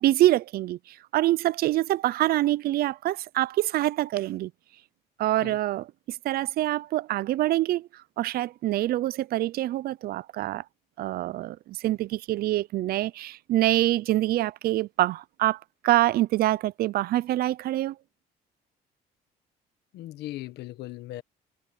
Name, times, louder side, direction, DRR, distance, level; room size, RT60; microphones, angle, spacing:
voice 1, 0.0-4.5 5.2-7.9 8.2-10.6 11.0-18.0, right 15 dB, 65° right, 0.5 m, -25 dB
voice 2, 19.9-21.2, left 16 dB, 80° left, 1.5 m, -38 dB
cardioid pair, 110°, 17 cm